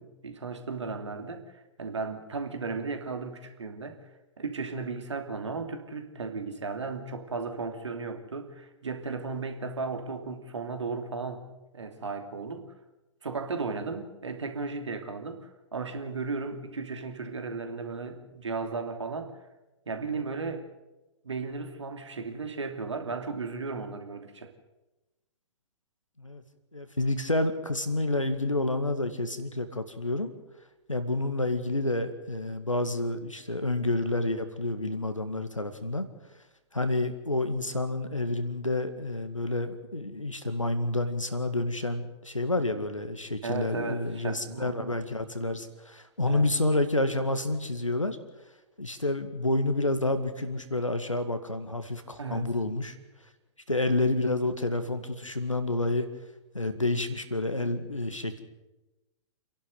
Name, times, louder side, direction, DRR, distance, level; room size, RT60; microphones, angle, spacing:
voice 1, 0.0-4.0 4.4-12.7 13.2-19.3 19.9-20.7 21.2-24.5 43.4-44.9 46.2-46.5 52.2-52.5, right 4 dB, 65° right, 5 dB, 2.8 m, -35 dB
voice 2, 26.7-30.3 30.9-36.1 36.7-48.2 48.8-53.0 53.7-56.1 56.5-58.4, left 2 dB, 85° left, 9 dB, 2.1 m, -29 dB
29.0 x 11.5 x 8.0 m, 1.0 s
figure-of-eight pair, 115°, 16 cm